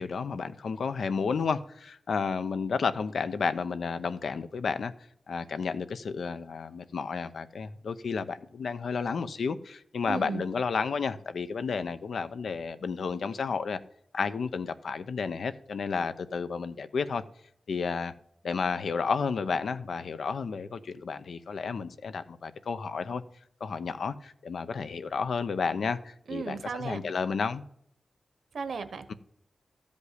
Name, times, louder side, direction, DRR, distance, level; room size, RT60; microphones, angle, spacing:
voice 1, 0.0-4.9 5.3-13.8 14.1-17.2 17.7-18.1 18.4-23.2 23.6-27.6, left 5 dB, 70° left, 0.7 m, -31 dB
voice 2, 10.1-10.4 26.3-27.0 28.5-29.1, right 5 dB, 65° right, 1.0 m, -35 dB
13.0 x 5.3 x 8.1 m
wide cardioid pair, 175°, 0 cm